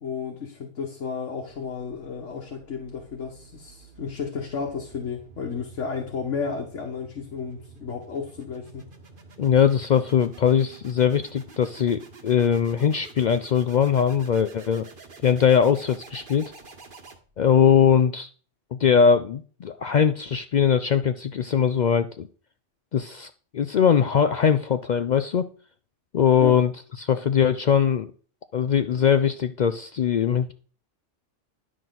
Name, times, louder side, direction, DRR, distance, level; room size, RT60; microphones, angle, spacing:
voice 1, 0.0-8.9 26.4-26.6, left 5 dB, 90° left, 1 dB, 1.6 m, -33 dB
sound 1, 1.5-17.6, right 3 dB, 45° right, 1.3 m, -49 dB
voice 2, 9.4-14.9 15.2-16.5 17.4-18.3 18.7-22.3 22.9-25.5 26.1-26.7 27.0-28.1 28.5-30.5, left 7 dB, 65° left, 10 dB, 0.4 m, -21 dB
10.5 x 6.2 x 3.9 m, 0.42 s
omnidirectional pair, 1.2 m